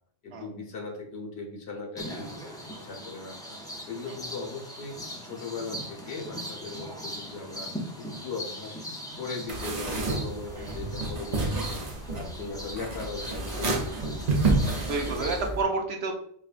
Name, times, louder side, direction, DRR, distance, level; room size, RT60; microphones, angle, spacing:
voice 1, 0.2-3.6 3.9-7.7 8.0-8.8 9.2-11.8 12.1-14.7 15.0-15.3, left 4 dB, 80° left, 1 dB, 1.1 m, -39 dB
sound 1, 2.0-15.5, equal, 5° left, 0.3 m, -40 dB
sound 2, 9.5-15.6, right 2 dB, 45° right, 0.8 m, -29 dB
voice 2, 14.9-16.2, right 3 dB, 75° right, 3 dB, 0.9 m, -30 dB
5.2 x 2.2 x 2.4 m, 0.64 s
omnidirectional pair, 1.1 m